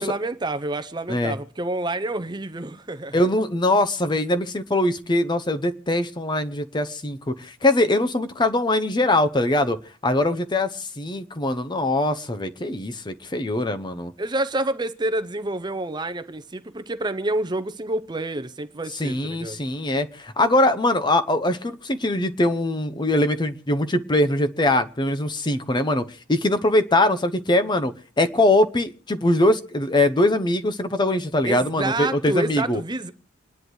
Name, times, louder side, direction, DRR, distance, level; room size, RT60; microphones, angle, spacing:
voice 1, 0.0-3.1 14.2-19.6 31.4-33.1, right 2 dB, 20° right, 0.7 m, -28 dB
voice 2, 3.1-9.8 10.0-14.1 19.0-32.8, left 1 dB, 25° left, 0.7 m, -22 dB
28.0 x 10.5 x 3.1 m
head